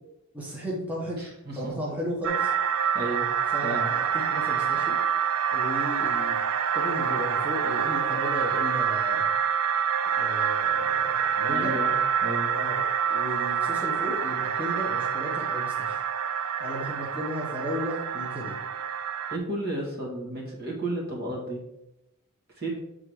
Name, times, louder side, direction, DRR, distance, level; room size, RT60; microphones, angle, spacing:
voice 1, 0.3-1.2 1.5-2.5 3.5-5.0 5.5-6.4 6.7-9.3 10.2-11.7 12.5-12.8 13.1-16.0 16.6-18.6, equal, 5° right, -5 dB, 1.3 m, -34 dB
voice 2, 1.2-1.7 2.9-3.3 3.6-3.9 11.5-11.9 12.2-12.5 19.3-21.6 22.6-22.8, right 1 dB, 45° right, -3 dB, 2.0 m, -32 dB
sound 1, 2.2-19.4, right 8 dB, 80° right, 0.5 m, -27 dB
7.5 x 3.7 x 4.8 m, 0.88 s
head